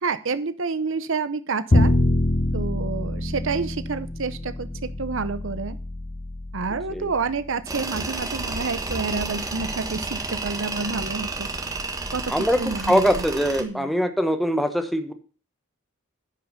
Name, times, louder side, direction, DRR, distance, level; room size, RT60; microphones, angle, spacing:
voice 1, 0.0-1.9 2.5-5.8 6.5-11.5 12.1-12.3 12.6-13.1 13.6-13.9, right 4 dB, 65° right, 13 dB, 0.7 m, -29 dB
Bowed string instrument, 1.7-7.9, left 1 dB, 30° left, 0.8 m, -25 dB
Tools, 7.7-13.6, right 3 dB, 15° right, 1.3 m, -31 dB
voice 2, 12.3-15.1, equal, ahead, 8 dB, 1.0 m, -22 dB
10.0 x 5.7 x 6.7 m, 0.39 s
head